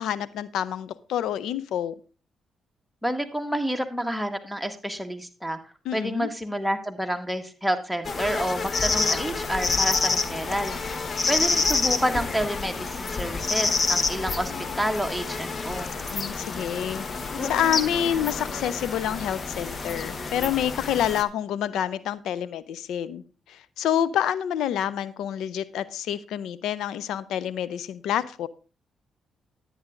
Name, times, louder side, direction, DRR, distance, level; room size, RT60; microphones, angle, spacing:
voice 1, 0.0-1.9 5.9-6.3 16.1-28.5, left 10 dB, 80° left, 17 dB, 0.5 m, -28 dB
voice 2, 3.0-5.6 5.9-10.8 11.3-15.9, equal, ahead, 8 dB, 1.7 m, -29 dB
sound 1, 8.0-21.2, left 4 dB, 45° left, 1.1 m, -28 dB
10.5 x 9.4 x 3.7 m, 0.35 s
supercardioid pair, 55°, 0 cm